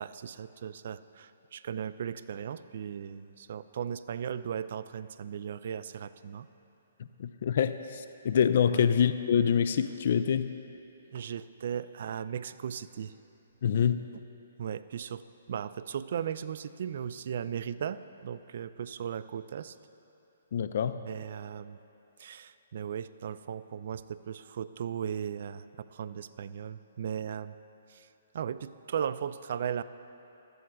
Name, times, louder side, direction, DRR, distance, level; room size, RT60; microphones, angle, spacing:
voice 1, 0.0-6.5 8.7-8.9 11.1-13.1 14.6-15.2 15.5-19.8 21.0-21.8 22.2-27.5 27.9-28.1 28.3-29.8, right 8 dB, 55° right, 14 dB, 0.4 m, -37 dB
voice 2, 7.2-10.5 13.6-14.0 20.5-21.0, left 8 dB, 55° left, 11 dB, 0.4 m, -26 dB
18.5 x 13.0 x 2.3 m, 2.8 s
figure-of-eight pair, 130°, 0 cm